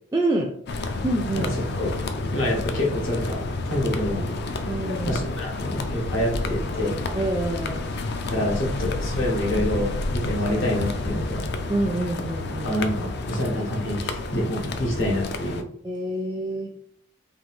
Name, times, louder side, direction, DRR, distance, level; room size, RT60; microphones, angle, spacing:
voice 1, 0.1-0.5 1.0-1.5 4.7-5.2 7.1-8.0 11.7-12.7 15.8-16.7, right 2 dB, 15° right, 2 dB, 0.3 m, -27 dB
sound 1, 0.7-15.6, left 2 dB, 55° left, 0.4 m, -30 dB
voice 2, 1.8-4.3 5.1-7.0 8.3-11.4 12.6-15.7, left 1 dB, 75° left, -1 dB, 1.4 m, -27 dB
3.8 x 2.7 x 3.6 m, 0.67 s
head